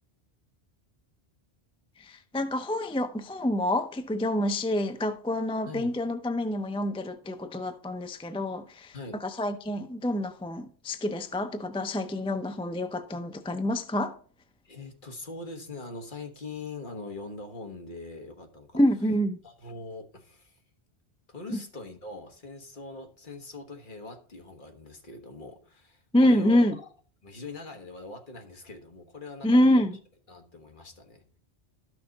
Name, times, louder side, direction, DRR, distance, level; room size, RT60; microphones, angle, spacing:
voice 1, 2.0-14.2 18.7-19.4 21.5-21.6 26.1-26.8 29.4-30.0, left 1 dB, 10° left, 0.4 m, -27 dB
voice 2, 14.6-18.8 19.4-20.6 21.3-26.8 27.2-29.9 30.3-31.4, left 3 dB, 50° left, 1.5 m, -42 dB
12.5 x 6.1 x 4.0 m
omnidirectional pair, 1.1 m